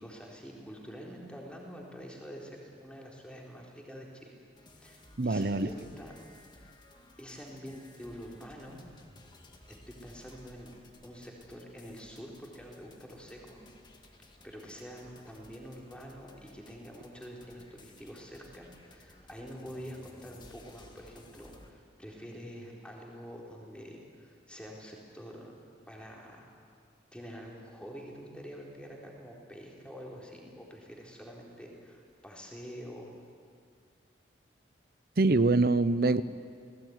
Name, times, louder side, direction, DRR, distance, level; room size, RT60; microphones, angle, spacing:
voice 1, 0.0-4.4 4.7-6.7 7.2-8.8 9.9-10.7 11.0-13.6 14.4-25.5 25.9-26.8 27.1-33.1, equal, 5° left, -2 dB, 4.1 m, -46 dB
sound 1, 4.6-21.7, left 1 dB, 25° left, 2.0 m, -57 dB
voice 2, 5.2-5.7 35.2-36.2, right 3 dB, 55° right, 14 dB, 0.7 m, -24 dB
28.5 x 19.5 x 9.6 m, 2.2 s
head